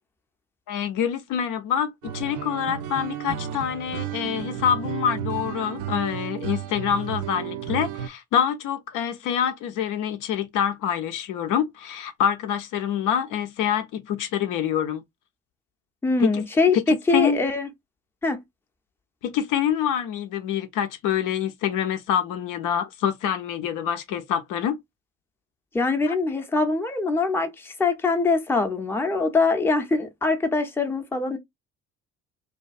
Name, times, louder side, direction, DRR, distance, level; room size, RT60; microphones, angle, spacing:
voice 1, 0.7-15.0 16.2-16.4 16.7-17.4 19.2-24.8 26.1-26.2, left 9 dB, 55° left, 0.5 m, -26 dB
sound 1, 2.0-8.1, right 10 dB, 50° right, 0.5 m, -33 dB
voice 2, 16.0-17.7 18.2-18.4 25.7-31.4, left 3 dB, 5° left, 0.6 m, -23 dB
2.5 x 2.2 x 2.4 m
hypercardioid pair, 50°, 39 cm